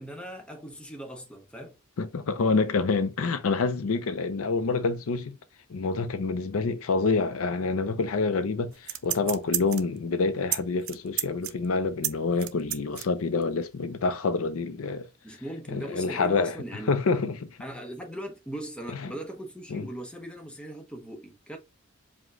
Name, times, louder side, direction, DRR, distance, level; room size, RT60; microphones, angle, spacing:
voice 1, 0.0-1.8 15.2-16.9 17.6-21.6, right 1 dB, 5° left, 0.8 m, -39 dB
voice 2, 2.0-5.4 5.7-15.1 15.7-16.5 16.9-17.5 19.0-19.1 19.7-19.9, left 4 dB, 75° left, 0.5 m, -27 dB
sound 1, 8.7-10.0 10.5-10.6 10.8-13.0 13.4-13.5, right 14 dB, 75° right, 0.5 m, -30 dB
4.9 x 2.2 x 3.6 m
head